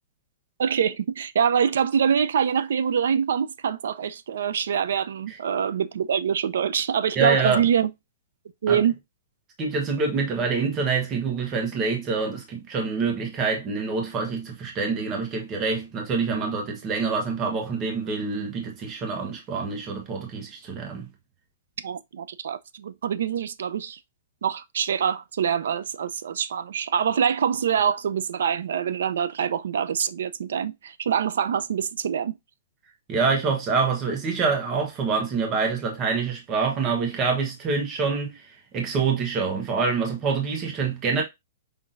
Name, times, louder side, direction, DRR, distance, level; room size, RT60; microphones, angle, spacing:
voice 1, 0.6-7.9 8.6-8.9 21.8-24.0 24.4-32.4, right 7 dB, 70° right, 0.5 m, -25 dB
voice 2, 7.1-7.7 8.7-8.8 9.6-21.1 33.1-41.2, right 4 dB, 20° right, 1.1 m, -26 dB
5.7 x 3.5 x 2.5 m
hypercardioid pair, 175°, 0 cm